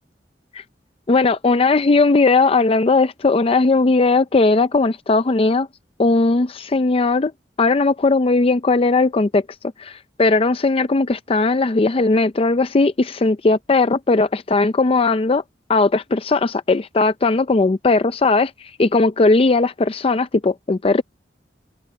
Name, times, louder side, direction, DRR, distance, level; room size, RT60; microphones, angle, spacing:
voice 1, 1.1-5.7 6.0-7.3 7.6-9.4 9.8-15.4 15.7-18.5 18.8-21.0, left 3 dB, 30° left, 0.5 m, -17 dB
head